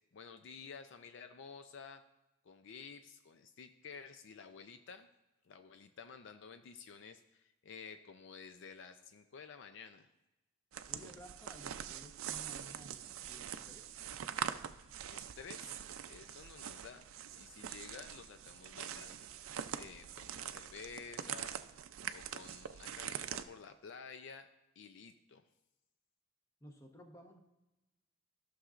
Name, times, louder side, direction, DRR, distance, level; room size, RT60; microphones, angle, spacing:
voice 1, 0.1-2.0 2.4-5.1 5.4-10.1 14.5-14.6 15.1-17.1 17.4-21.6 22.1-24.5 24.8-25.4, left 5 dB, 60° left, 9 dB, 0.4 m, -52 dB
sound 1, 10.7-23.4, right 9 dB, 75° right, 0.4 m, -44 dB
voice 2, 10.9-13.9 26.6-27.4, equal, 15° left, 3 dB, 0.9 m, -55 dB
14.5 x 6.3 x 2.5 m, 1.0 s
head